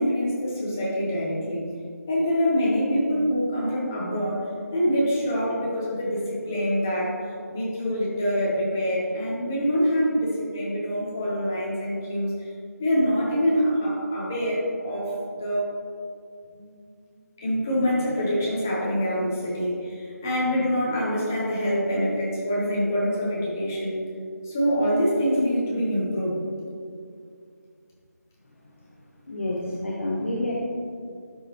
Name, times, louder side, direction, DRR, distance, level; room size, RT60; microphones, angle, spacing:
voice 1, 0.0-1.6 2.1-7.2 7.5-12.3 12.8-15.7 16.5-16.7 17.4-24.0 24.4-26.4, equal, 10° left, -5 dB, 0.7 m, -25 dB
voice 2, 29.3-30.5, left 1 dB, 45° left, -3 dB, 1.0 m, -28 dB
12.0 x 5.1 x 2.9 m, 2.3 s
figure-of-eight pair, 175°, 9 cm